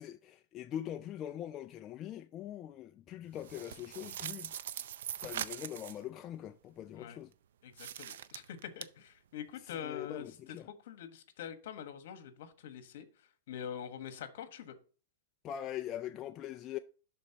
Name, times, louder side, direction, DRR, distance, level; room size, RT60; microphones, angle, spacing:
voice 1, 0.0-4.5 5.2-7.3 9.7-10.7 15.4-16.8, left 11 dB, 25° left, 0.3 m, -42 dB
sound 1, 3.4-6.0 7.7-8.8, right 10 dB, 70° right, 0.5 m, -42 dB
voice 2, 7.6-10.3 10.8-13.1 13.5-14.8, left 9 dB, 60° left, 1.3 m, -44 dB
11.5 x 4.2 x 2.9 m
supercardioid pair, 160°, 0 cm